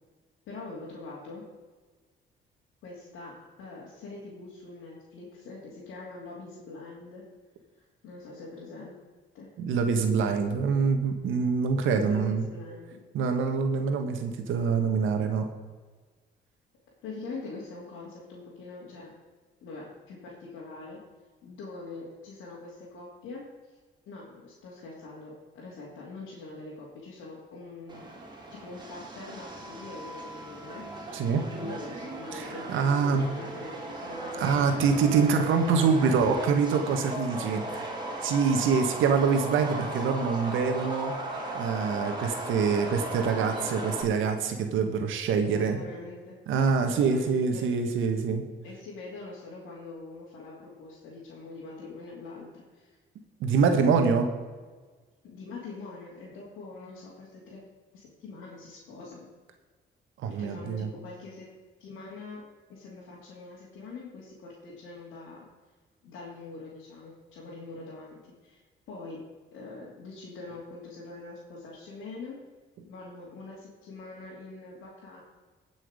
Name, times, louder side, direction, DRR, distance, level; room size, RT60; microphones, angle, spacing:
voice 1, 0.5-1.4 2.8-7.2 8.0-9.0 9.3-9.5 11.9-13.0 17.0-19.1 19.6-21.0 21.4-23.4 24.0-28.1 28.5-31.2 31.5-34.9 42.1-42.2 45.3-46.4 46.8-47.7 48.6-52.9 55.2-57.6 57.9-59.3 60.4-61.5 61.8-62.4 62.7-65.5 66.0-68.6 68.9-69.2 69.5-72.4 72.8-75.2, left 3 dB, 85° left, -6 dB, 2.9 m, -43 dB
voice 2, 9.6-12.4 13.1-15.5 31.1-31.4 32.3-33.2 34.4-37.9 38.2-41.1 41.5-45.8 46.5-48.4 53.4-54.3 60.2-60.9, right 5 dB, 85° right, 5 dB, 1.5 m, -25 dB
Subway metro underground, 27.9-44.0, right 1 dB, 20° right, 2.8 m, -37 dB
17.0 x 6.3 x 5.1 m, 1.4 s
cardioid pair, 90°, 20 cm